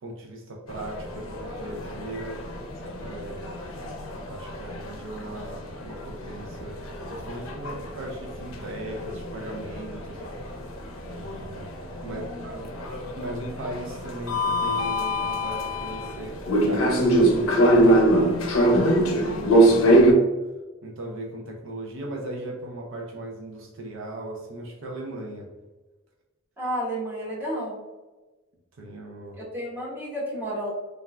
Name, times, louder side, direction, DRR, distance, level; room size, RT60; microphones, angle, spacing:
voice 1, 0.0-3.5 4.3-6.8 7.1-10.2 11.1-11.7 12.0-12.7 13.2-16.3 16.6-17.6 19.2-20.2 20.8-25.5 28.8-29.4, right 1 dB, 65° right, 0 dB, 0.5 m, -37 dB
sound 1, 0.7-20.1, right 1 dB, 70° left, 0.5 m, -24 dB
voice 2, 12.0-12.6 26.6-27.8 29.5-30.7, equal, 10° right, -7 dB, 1.0 m, -32 dB
3.1 x 2.3 x 2.2 m, 1.2 s
head